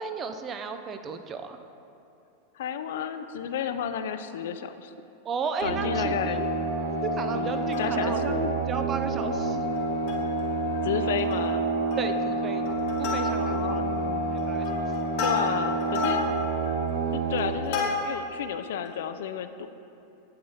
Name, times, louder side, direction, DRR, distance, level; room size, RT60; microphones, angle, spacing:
voice 1, 0.0-1.6 5.2-6.5 7.0-8.4 8.7-9.6 12.0-12.7 13.0-13.8 14.5-14.9, right 5 dB, 25° right, 8 dB, 0.3 m, -34 dB
voice 2, 2.5-4.9 5.6-6.5 7.3-8.6 10.8-11.6 13.3-14.2 15.2-16.2 17.1-19.7, left 9 dB, 75° left, 10 dB, 0.3 m, -32 dB
sound 1, 5.6-17.5, right 3 dB, 70° right, 1.1 m, -28 dB
Plucked string instrument, 7.5-8.3 8.7-8.8 9.1-9.3 9.8-10.4 10.7-10.8 11.2-11.6 11.9-12.3 12.7-13.7 14.2-18.3 18.9-19.0, left 4 dB, 50° left, 1.4 m, -32 dB
8.7 x 6.5 x 2.8 m, 2.7 s
supercardioid pair, 145°, 0 cm